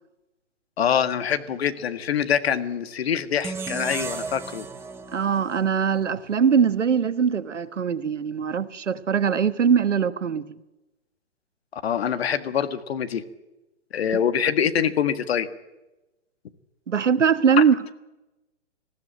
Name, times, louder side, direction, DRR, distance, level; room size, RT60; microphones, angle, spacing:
voice 1, 0.8-4.6 11.7-13.2 13.9-15.5 17.5-17.6, left 8 dB, 60° left, 1.8 m, -24 dB
sound 1, 3.4-6.6, right 4 dB, 5° right, 0.8 m, -35 dB
voice 2, 5.1-10.6 14.1-14.2 16.9-17.9, right 7 dB, 80° right, 1.3 m, -22 dB
20.0 x 15.5 x 9.0 m
hypercardioid pair, 135°, 36 cm